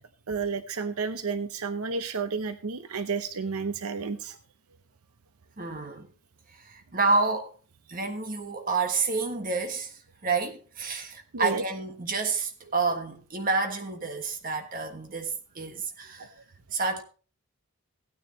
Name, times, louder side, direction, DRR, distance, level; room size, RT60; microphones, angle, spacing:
voice 1, 0.3-4.4 11.3-11.6 16.2-16.3, right 5 dB, 80° right, 0.7 m, -31 dB
voice 2, 5.6-6.1 6.5-7.6 7.9-16.3 16.7-17.0, right 4 dB, 40° right, 1.5 m, -29 dB
16.0 x 9.5 x 2.8 m
head